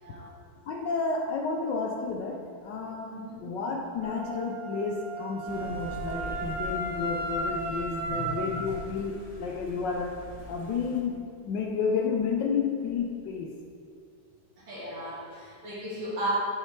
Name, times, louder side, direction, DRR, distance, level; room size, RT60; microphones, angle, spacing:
voice 1, 0.0-0.3 3.1-3.4 8.1-8.3 14.6-16.3, right 1 dB, 70° right, -6 dB, 2.8 m, -36 dB
voice 2, 0.7-10.2 10.5-13.5, left 5 dB, 70° left, 2 dB, 1.1 m, -31 dB
Wind instrument woodwind instrument, 4.0-8.7, right 2 dB, ahead, 1.0 m, -34 dB
sound 1, 5.5-11.0, left 1 dB, 50° left, 0.4 m, -44 dB
10.5 x 6.5 x 3.3 m, 2.4 s
omnidirectional pair, 2.3 m